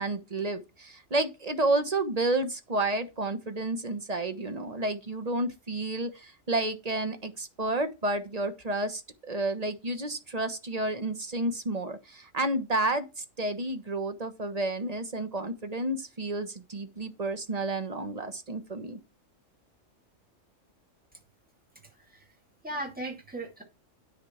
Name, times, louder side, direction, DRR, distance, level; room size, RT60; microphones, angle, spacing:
voice 1, 0.0-9.0 9.3-19.0, right 2 dB, 30° right, 1.3 m, -31 dB
voice 2, 21.8-22.3 22.6-23.6, right 1 dB, 5° right, 2.3 m, -38 dB
9.8 x 4.3 x 7.2 m
omnidirectional pair, 1.3 m